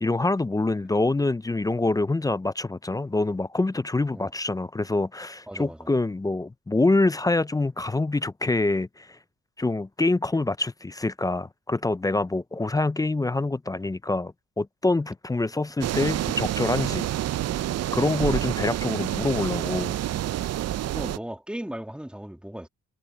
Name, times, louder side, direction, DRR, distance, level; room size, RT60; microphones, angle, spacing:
voice 1, 0.0-9.2 9.6-17.1 17.9-20.0, left 2 dB, 10° left, 0.5 m, -25 dB
voice 2, 5.5-5.9 20.9-22.7, right 1 dB, 5° right, 2.3 m, -37 dB
sound 1, 15.8-21.2, right 13 dB, 55° right, 0.6 m, -28 dB
cardioid pair, 90°, 30 cm